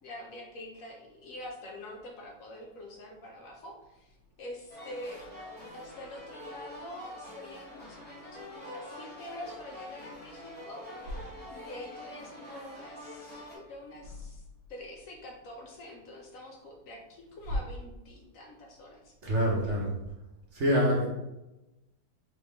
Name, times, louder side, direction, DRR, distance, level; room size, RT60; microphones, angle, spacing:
voice 1, 0.0-5.3 5.7-10.8 11.5-14.4 14.7-19.3, left 1 dB, 65° left, 1 dB, 0.9 m, -46 dB
sound 1, 4.7-13.6, left 1 dB, 10° left, 0.5 m, -45 dB
voice 2, 19.2-19.9 20.5-21.1, equal, 50° right, -3 dB, 1.0 m, -26 dB
3.9 x 3.3 x 3.3 m, 0.97 s
omnidirectional pair, 1.9 m